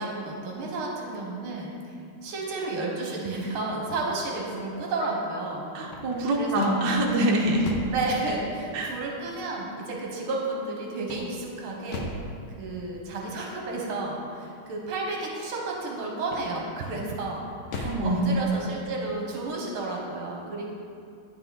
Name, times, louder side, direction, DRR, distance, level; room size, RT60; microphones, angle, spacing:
voice 1, 0.0-5.7 6.3-6.9 7.9-12.1 12.6-20.7, right 2 dB, 80° right, -1 dB, 1.9 m, -32 dB
sound 1, 5.7-8.1 11.0-12.3 16.2-16.8 17.3-18.1, left 2 dB, 65° left, 1.3 m, -37 dB
voice 2, 5.7-7.7 8.7-8.9 17.8-18.2, right 1 dB, 65° right, -1 dB, 1.4 m, -25 dB
9.3 x 5.8 x 3.8 m, 2.4 s
omnidirectional pair, 2.4 m